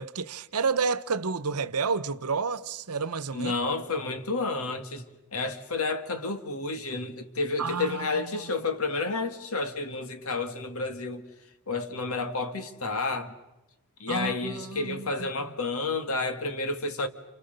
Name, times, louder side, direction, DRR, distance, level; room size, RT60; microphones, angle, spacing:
voice 1, 0.0-3.5 7.6-8.2 14.1-15.3, right 5 dB, 85° right, 1.0 m, -30 dB
voice 2, 3.3-5.1 5.3-11.3 11.7-13.3 14.0-17.1, left 3 dB, 70° left, 2.2 m, -30 dB
29.0 x 29.0 x 6.8 m
head